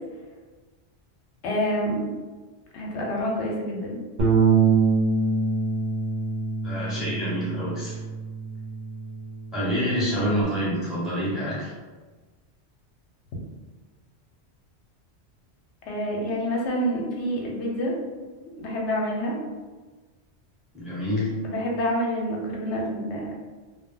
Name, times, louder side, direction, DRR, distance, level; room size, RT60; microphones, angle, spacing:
voice 1, 1.4-2.0 2.7-4.0 15.9-17.9 18.6-19.4 21.4-23.3, equal, 80° left, -2 dB, 0.9 m, -27 dB
Bass guitar, 4.2-10.4, right 5 dB, 50° right, 0.5 m, -25 dB
voice 2, 6.6-8.0 9.5-11.7 20.7-21.3, equal, ahead, -8 dB, 0.7 m, -27 dB
2.1 x 2.1 x 3.6 m, 1.3 s
omnidirectional pair, 1.2 m